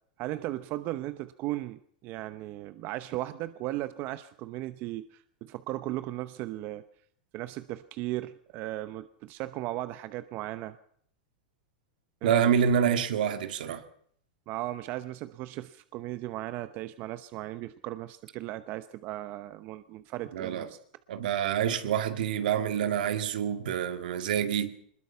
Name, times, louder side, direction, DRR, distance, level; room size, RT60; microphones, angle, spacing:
voice 1, 0.2-6.8 7.3-10.8 12.2-12.5 14.5-20.8, right 16 dB, 45° right, 0.9 m, -36 dB
voice 2, 12.2-13.8 20.3-20.7 21.1-24.7, right 8 dB, 75° right, 2.1 m, -27 dB
22.5 x 20.5 x 5.7 m
hypercardioid pair, 130°, 5 cm